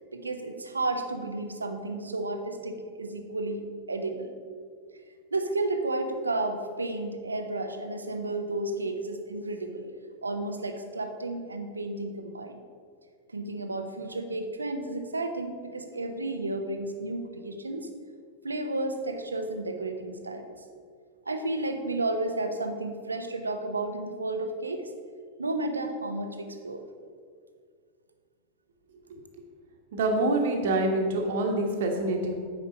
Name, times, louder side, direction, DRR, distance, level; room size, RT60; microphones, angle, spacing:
voice 1, 0.1-4.3 5.3-9.9 10.2-12.6 13.3-17.9 18.4-20.6 21.3-24.8 25.4-26.8, right 2 dB, 80° right, 6 dB, 0.8 m, -32 dB
voice 2, 29.9-32.3, right 2 dB, 55° right, 2 dB, 1.3 m, -26 dB
9.1 x 5.3 x 5.2 m, 2.1 s
figure-of-eight pair, 90°, 0 cm